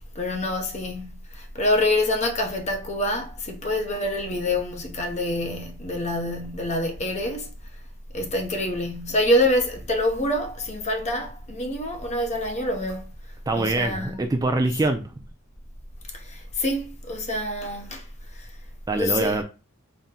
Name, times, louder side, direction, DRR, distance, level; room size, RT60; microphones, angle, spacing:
voice 1, 0.2-1.1 1.5-7.5 8.1-13.0 13.6-14.3 16.6-18.0 18.9-19.4, left 1 dB, 35° left, 0.7 m, -26 dB
voice 2, 13.5-15.0 18.9-19.4, right 2 dB, 15° right, 0.3 m, -24 dB
4.1 x 2.1 x 3.7 m
head